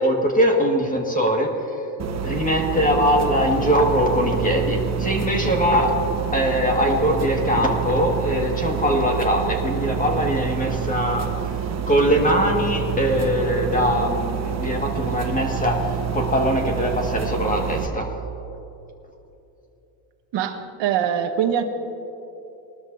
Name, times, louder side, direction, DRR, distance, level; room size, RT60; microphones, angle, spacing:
voice 1, 0.0-1.5 2.2-5.9 6.3-11.3 11.9-15.8 16.1-18.1, equal, 15° left, 1 dB, 1.8 m, -21 dB
sound 1, 2.0-17.9, right 8 dB, 35° right, 1.0 m, -27 dB
voice 2, 20.3-21.6, right 9 dB, 60° right, 7 dB, 1.3 m, -23 dB
20.5 x 12.5 x 2.7 m, 3.0 s
supercardioid pair, 105°, 49 cm